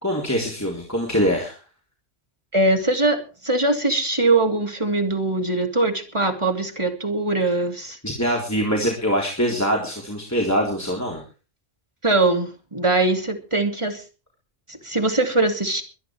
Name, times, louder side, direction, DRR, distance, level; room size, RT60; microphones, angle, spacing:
voice 1, 0.0-1.6 8.0-11.2, equal, 15° left, -1 dB, 3.7 m, -23 dB
voice 2, 2.5-8.0 12.0-14.0 14.7-15.8, right 2 dB, 25° right, 4 dB, 2.9 m, -22 dB
22.5 x 10.0 x 4.7 m, 0.35 s
omnidirectional pair, 1.3 m